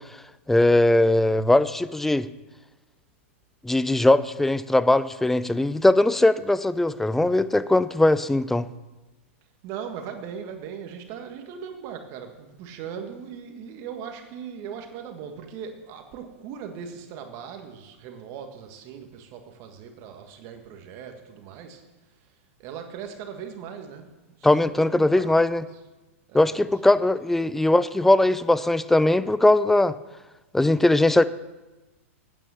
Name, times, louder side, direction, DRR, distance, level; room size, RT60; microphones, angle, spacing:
voice 1, 0.5-2.3 3.6-8.7 24.4-25.6 26.3-29.9 30.5-31.2, left 2 dB, 5° left, 15 dB, 0.4 m, -20 dB
voice 2, 9.6-21.8 22.6-25.4 26.3-26.7, right 7 dB, 45° right, 5 dB, 1.6 m, -39 dB
9.2 x 9.1 x 7.0 m, 1.1 s
hypercardioid pair, 120°, 7 cm